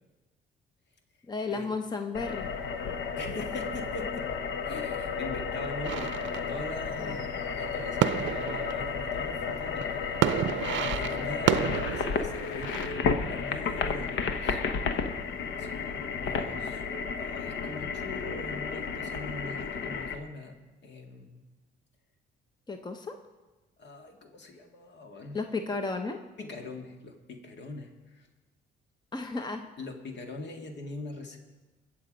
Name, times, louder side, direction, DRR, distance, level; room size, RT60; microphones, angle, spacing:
voice 1, 1.3-2.5 7.0-7.2 22.7-23.2 25.3-26.2 29.1-29.7, left 3 dB, 20° left, 6 dB, 0.9 m, -33 dB
sound 1, 2.1-20.2, left 5 dB, 80° left, 1.0 m, -32 dB
voice 2, 3.2-4.3 4.6-10.3 10.6-14.6 15.5-16.8 17.2-20.6 20.8-21.4 23.8-25.5 26.4-28.3 29.3-31.4, left 2 dB, 60° left, 4 dB, 1.9 m, -42 dB
sound 2, 5.8-12.9, right 11 dB, 70° right, 0.5 m, -32 dB
21.5 x 7.1 x 5.2 m, 1.2 s
cardioid pair, 90°, 20 cm